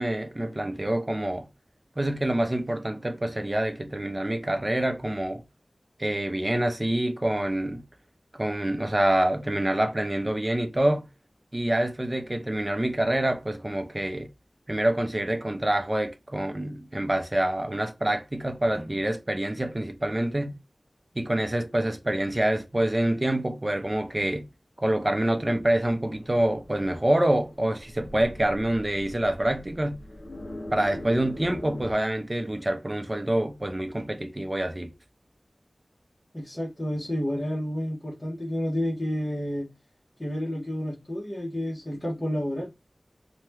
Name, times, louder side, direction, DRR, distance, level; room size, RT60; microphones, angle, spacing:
voice 1, 0.0-1.5 2.0-5.4 6.0-7.9 8.3-11.1 11.5-14.3 14.7-20.6 21.2-24.5 24.8-30.0 30.7-34.9, right 1 dB, 30° right, 0.6 m, -26 dB
sound 1, 25.8-31.9, left 1 dB, 70° left, 0.9 m, -42 dB
voice 2, 36.3-39.7 40.2-42.7, equal, 25° left, 1.0 m, -30 dB
2.8 x 2.1 x 3.3 m
wide cardioid pair, 60°, 0 cm